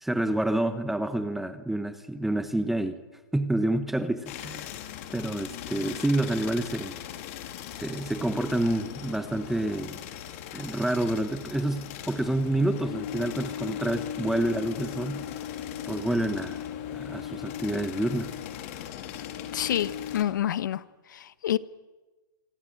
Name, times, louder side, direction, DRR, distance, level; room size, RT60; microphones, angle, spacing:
voice 1, 0.0-3.0 3.3-4.7 5.1-7.0 7.8-10.0 10.5-15.2 15.9-16.6 16.9-18.3, right 1 dB, ahead, 11 dB, 1.0 m, -28 dB
sound 1, 4.3-20.2, left 10 dB, 40° left, 2.9 m, -38 dB
voice 2, 19.5-20.8 21.1-21.6, left 11 dB, 60° left, 16 dB, 1.2 m, -28 dB
25.5 x 22.5 x 9.2 m, 1.2 s
hypercardioid pair, 165°, 12 cm